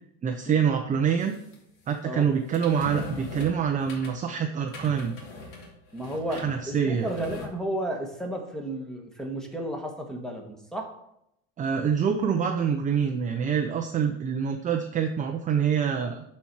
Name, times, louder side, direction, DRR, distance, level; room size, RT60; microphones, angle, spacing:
voice 1, 0.2-1.3 1.9-5.1 6.3-7.1 11.6-16.2, right 7 dB, 20° right, 4 dB, 0.6 m, -26 dB
sound 1, 1.3-1.5 2.5-4.3 4.7-6.7 6.9-7.5, left 1 dB, 60° left, 3.0 m, -39 dB
voice 2, 5.9-10.9, right 1 dB, ahead, 2 dB, 1.4 m, -33 dB
11.5 x 4.4 x 4.6 m, 0.78 s
supercardioid pair, 125°, 35 cm